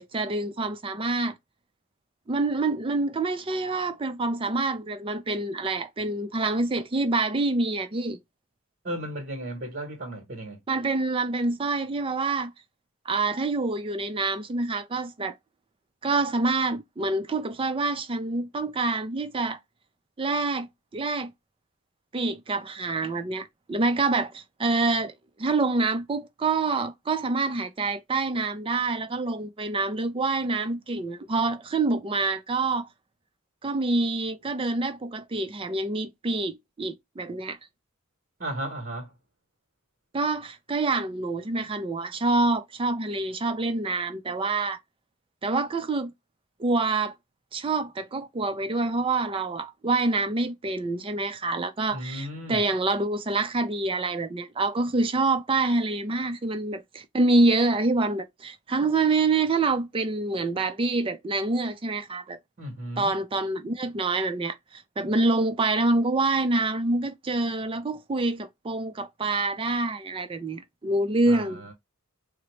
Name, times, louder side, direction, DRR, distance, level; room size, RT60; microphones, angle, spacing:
voice 1, 0.0-1.3 2.3-8.2 10.7-12.5 13.1-15.4 16.0-19.6 20.2-21.3 22.1-25.1 25.4-32.9 33.6-37.6 40.1-44.8 45.4-46.1 46.6-47.1 47.5-62.4 63.0-71.6, right 3 dB, 25° right, 0.4 m, -26 dB
voice 2, 8.8-10.6 38.4-39.1 51.9-52.6 62.6-63.1 71.2-71.7, right 1 dB, 45° right, 1.0 m, -35 dB
3.8 x 2.0 x 3.1 m
head